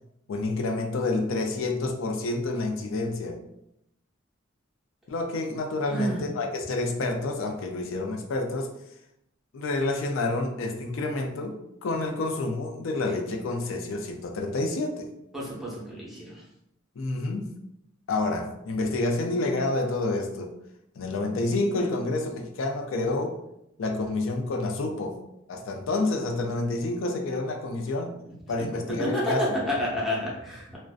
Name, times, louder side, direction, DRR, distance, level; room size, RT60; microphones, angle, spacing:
voice 1, 0.3-3.4 5.1-8.7 9.5-15.1 17.0-17.6 18.1-20.5 21.0-23.4 23.8-25.2 25.5-28.1 28.5-29.6, left 2 dB, 85° left, 3 dB, 0.4 m, -28 dB
voice 2, 15.3-16.4 29.0-30.8, equal, ahead, -6 dB, 0.7 m, -29 dB
2.5 x 2.1 x 2.4 m, 0.81 s
head